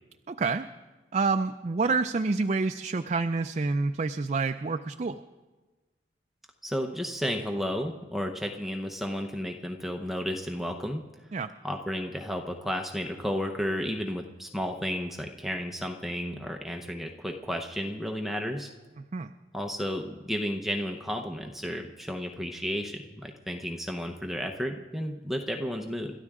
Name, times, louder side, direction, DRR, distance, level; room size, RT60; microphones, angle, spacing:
voice 1, 0.3-0.7 1.1-5.2 11.3-11.5 19.0-19.3, right 4 dB, 40° right, 7 dB, 0.4 m, -28 dB
voice 2, 6.6-11.0 11.6-18.7 19.5-26.1, equal, ahead, 2 dB, 0.8 m, -32 dB
27.5 x 13.0 x 3.7 m, 1.2 s
head